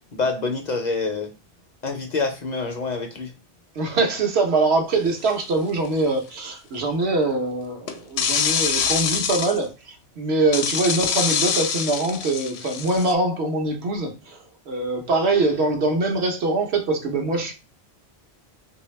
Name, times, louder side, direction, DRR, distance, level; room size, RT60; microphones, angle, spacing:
voice 1, 0.1-1.3 1.8-3.3, left 3 dB, 50° left, 0.6 m, -26 dB
voice 2, 3.7-17.5, right 2 dB, 80° right, 1.1 m, -23 dB
sound 1, 5.3-5.5 7.9-9.6 10.5-13.1, left 7 dB, 80° left, 0.8 m, -25 dB
3.2 x 2.7 x 3.1 m
omnidirectional pair, 1.1 m